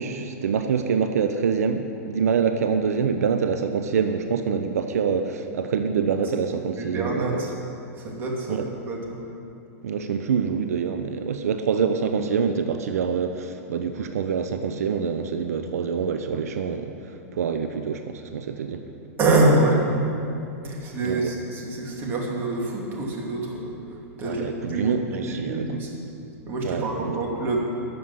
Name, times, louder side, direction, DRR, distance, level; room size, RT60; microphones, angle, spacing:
voice 1, 0.0-7.5 8.5-8.7 9.8-18.8 21.0-21.3 24.2-25.8 26.6-27.2, right 6 dB, 90° right, 7 dB, 0.8 m, -26 dB
voice 2, 6.8-7.5 8.0-9.2 19.2-19.9 20.6-26.0 26.5-27.6, right 2 dB, 25° right, -2 dB, 2.7 m, -26 dB
13.0 x 7.1 x 9.7 m, 2.6 s
supercardioid pair, 150°, 8 cm